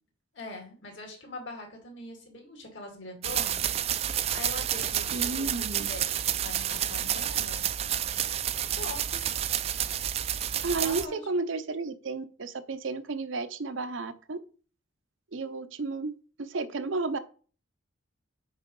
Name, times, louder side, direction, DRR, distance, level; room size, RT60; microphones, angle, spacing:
voice 1, 0.3-3.7 4.3-7.7 8.8-9.2 10.8-11.2, left 2 dB, 70° left, 2 dB, 2.5 m, -42 dB
sound 1, 3.2-11.1, right 10 dB, 30° right, 0.3 m, -30 dB
voice 2, 5.1-5.9 10.6-14.4 15.3-17.2, right 3 dB, 80° right, 10 dB, 0.7 m, -32 dB
6.4 x 4.8 x 5.3 m, 0.40 s
head